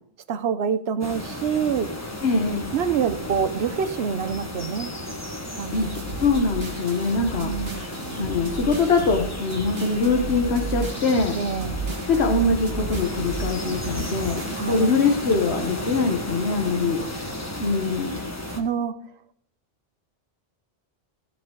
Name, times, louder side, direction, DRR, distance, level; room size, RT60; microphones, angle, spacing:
voice 1, 0.3-1.9 2.7-4.9 5.6-6.0 7.4-7.8 11.3-11.7 14.6-14.9 16.7-17.1 18.5-19.0, right 6 dB, 70° right, 12 dB, 1.0 m, -26 dB
sound 1, 1.0-18.6, left 1 dB, 15° left, 1.4 m, -34 dB
voice 2, 2.2-2.7 5.7-5.9 6.1-7.8 8.2-11.4 12.1-17.0 17.6-18.3, left 4 dB, 70° left, 2 dB, 1.4 m, -23 dB
sound 2, 5.7-14.9, right 4 dB, 50° right, 1.8 m, -33 dB
15.0 x 7.6 x 3.8 m, 0.67 s
omnidirectional pair, 1.1 m